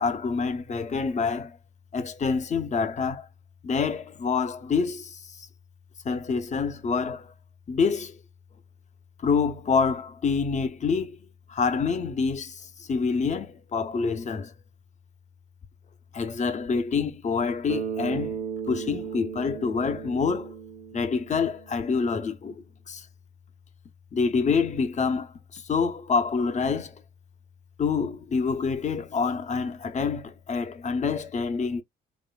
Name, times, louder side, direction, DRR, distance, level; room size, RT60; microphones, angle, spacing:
voice 1, 0.0-1.6 1.9-3.3 3.6-5.5 6.0-7.3 7.7-8.2 9.2-11.2 11.5-14.5 16.1-20.5 20.9-23.1 24.1-26.9 27.8-31.8, left 5 dB, 35° left, 0.6 m, -27 dB
Bass guitar, 17.7-21.9, right 7 dB, 85° right, 0.9 m, -35 dB
3.0 x 2.4 x 2.3 m
cardioid pair, 90°, 20 cm